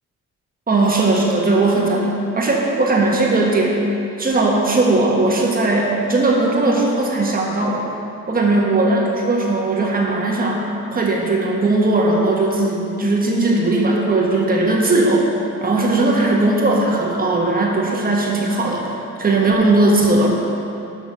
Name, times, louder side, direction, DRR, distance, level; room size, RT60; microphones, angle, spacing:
voice 1, 0.7-3.8 4.2-7.9 8.3-10.6 10.9-15.3 15.6-20.3, right 2 dB, 30° right, -2 dB, 1.5 m, -18 dB
6.5 x 6.1 x 6.0 m, 2.8 s
cardioid pair, 90°, 30 cm